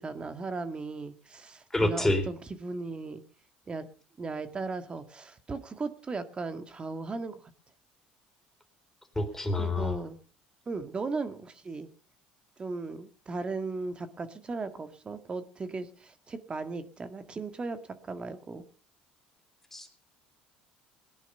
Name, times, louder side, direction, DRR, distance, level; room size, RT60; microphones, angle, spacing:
voice 1, 0.0-3.2 3.7-3.9 4.2-7.3 9.6-10.2 10.7-11.9 12.6-18.6, right 3 dB, 30° right, 10 dB, 1.8 m, -37 dB
voice 2, 1.7-2.2 9.2-10.0 19.7-19.9, left 2 dB, 10° left, 5 dB, 4.0 m, -27 dB
18.5 x 11.0 x 5.6 m, 0.43 s
supercardioid pair, 85°, 4 cm